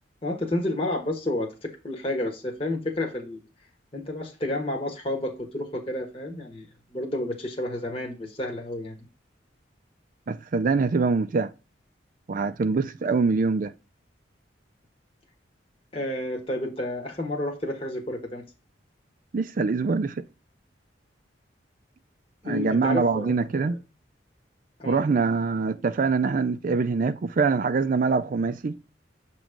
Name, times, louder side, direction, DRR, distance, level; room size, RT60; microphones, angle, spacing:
voice 1, 0.2-3.4 3.9-6.7 6.9-9.1 15.9-18.4 22.4-23.3 23.6-23.8 24.8-25.0, left 1 dB, 30° left, 1.4 m, -30 dB
voice 2, 10.3-11.5 12.3-13.7 19.3-20.3 22.4-23.8 24.9-28.8, right 4 dB, 45° right, 0.4 m, -24 dB
7.4 x 3.1 x 4.9 m
head